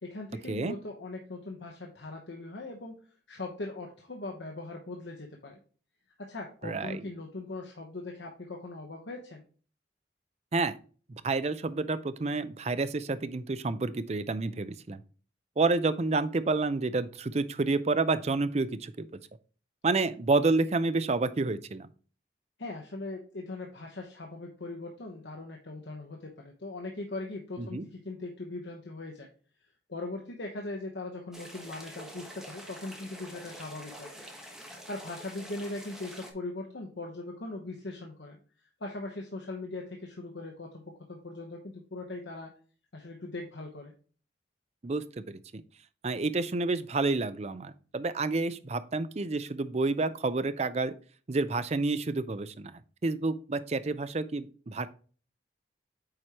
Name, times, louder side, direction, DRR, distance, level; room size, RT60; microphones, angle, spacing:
voice 1, 0.0-3.0 3.3-5.6 6.2-9.4 22.6-29.3 29.9-34.2 34.6-38.4 38.8-42.5 42.9-43.9, left 2 dB, 70° left, 1 dB, 1.0 m, -40 dB
voice 2, 6.6-7.0 10.5-10.7 11.1-15.0 15.6-19.2 19.8-21.9 27.7-27.8 44.8-45.6 46.0-50.9 51.3-54.9, right 3 dB, 35° right, 13 dB, 0.5 m, -29 dB
sound 1, 31.3-36.3, equal, 5° right, 1.2 m, -46 dB
8.6 x 4.8 x 2.9 m, 0.40 s
head